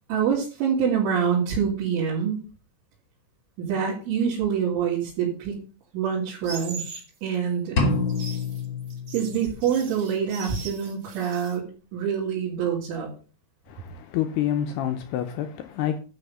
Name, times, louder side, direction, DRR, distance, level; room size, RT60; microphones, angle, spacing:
voice 1, 0.1-2.4 3.6-5.6 5.9-7.9 9.1-11.7 11.9-13.1, right 7 dB, 75° right, 5.2 m, -26 dB
sound 1, 6.4-7.1 7.9-11.6, right 5 dB, 50° right, 1.2 m, -40 dB
sound 2, 7.8-9.7, left 3 dB, 40° left, 1.7 m, -27 dB
voice 2, 13.7-16.0, left 10 dB, 80° left, 2.4 m, -28 dB
12.0 x 5.0 x 6.8 m
omnidirectional pair, 5.5 m